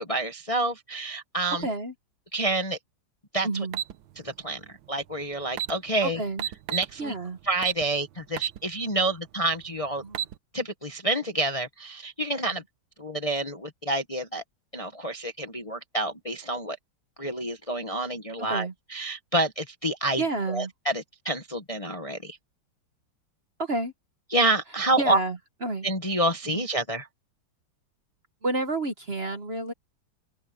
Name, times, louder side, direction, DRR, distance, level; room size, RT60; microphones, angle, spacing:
voice 1, 0.0-1.7 2.3-2.8 3.3-3.5 4.2-4.6 4.9-6.2 6.7-7.1 7.5-10.0 10.5-12.6 13.0-14.4 14.7-16.8 17.2-20.2 20.5-22.4 24.3-25.2 25.8-27.1, right 2 dB, 20° left, 1.0 m, -28 dB
voice 2, 1.6-1.9 3.4-3.8 6.0-6.5 7.0-7.4 10.0-10.2 12.5-12.6 18.4-18.7 20.2-20.7 23.6-23.9 25.0-25.9 26.4-26.6 28.4-29.7, right 2 dB, 35° right, 1.4 m, -30 dB
sound 1, 3.7-3.9 5.1-5.2 5.5-5.7 6.4-6.9 7.6-7.8 8.4-8.6 9.0-9.1 9.9-10.3, right 11 dB, 85° right, 1.6 m, -30 dB
open air
omnidirectional pair, 2.1 m